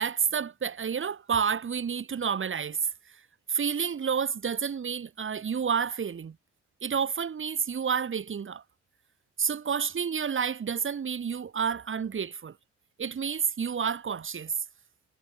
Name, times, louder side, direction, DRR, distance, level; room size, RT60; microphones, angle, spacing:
voice 1, 0.0-2.8 3.5-6.4 6.8-8.6 9.4-12.6 13.0-14.5, right 7 dB, 40° right, 2.6 m, -29 dB
cardioid pair, 90°, 30 cm